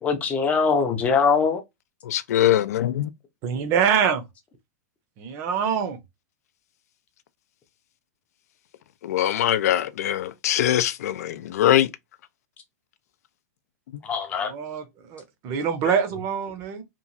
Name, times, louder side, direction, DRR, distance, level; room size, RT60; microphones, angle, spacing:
voice 1, 0.0-1.6 14.0-14.5, left 5 dB, 15° left, 0.5 m, -22 dB
voice 2, 2.1-3.1 9.0-11.9, left 12 dB, 70° left, 0.4 m, -22 dB
voice 3, 3.4-4.2 5.2-6.0 14.4-16.8, right 7 dB, 30° right, 0.6 m, -25 dB
3.0 x 2.4 x 2.5 m
supercardioid pair, 160°, 9 cm